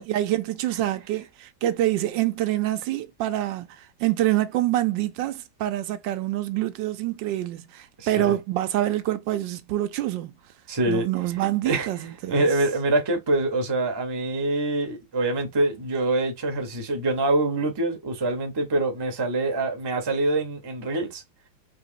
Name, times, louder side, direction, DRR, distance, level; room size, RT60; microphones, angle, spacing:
voice 1, 0.1-10.4 10.9-12.5, right 14 dB, 80° right, 1.2 m, -26 dB
voice 2, 8.0-8.4 10.7-11.1 11.6-11.9 12.3-21.2, right 2 dB, 25° right, 0.6 m, -25 dB
4.1 x 2.9 x 2.5 m
omnidirectional pair, 2.0 m